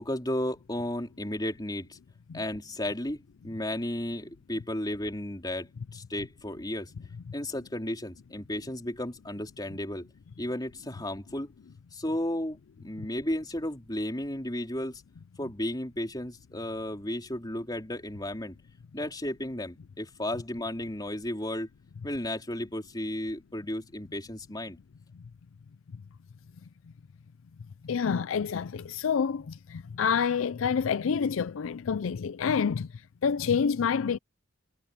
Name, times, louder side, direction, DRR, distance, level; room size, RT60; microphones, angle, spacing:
voice 1, 0.0-2.0 2.3-6.9 7.3-10.1 10.4-11.5 11.9-15.0 15.4-18.6 18.9-21.7 22.0-24.8, left 1 dB, 20° left, 4.1 m, -34 dB
voice 2, 27.8-32.9 33.2-34.2, left 6 dB, 75° left, 0.4 m, -28 dB
head